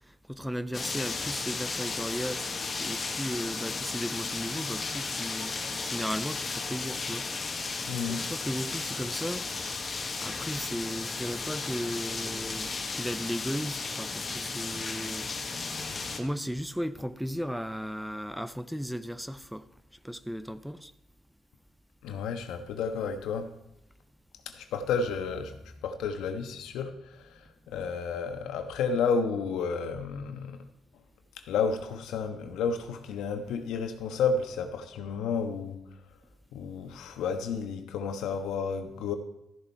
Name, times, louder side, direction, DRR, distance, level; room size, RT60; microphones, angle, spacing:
voice 1, 0.1-2.5 2.8-7.3 8.1-9.4 9.8-15.3 16.1-19.7 20.0-20.9, equal, ahead, 0.6 m, -36 dB
sound 1, 0.7-16.2, left 4 dB, 35° left, 1.5 m, -34 dB
voice 2, 7.9-8.3 22.0-23.5 24.4-25.5 25.8-30.6 31.5-35.8 36.5-39.2, left 5 dB, 85° left, 1.2 m, -31 dB
14.0 x 7.1 x 4.5 m
cardioid pair, 90°, 0 cm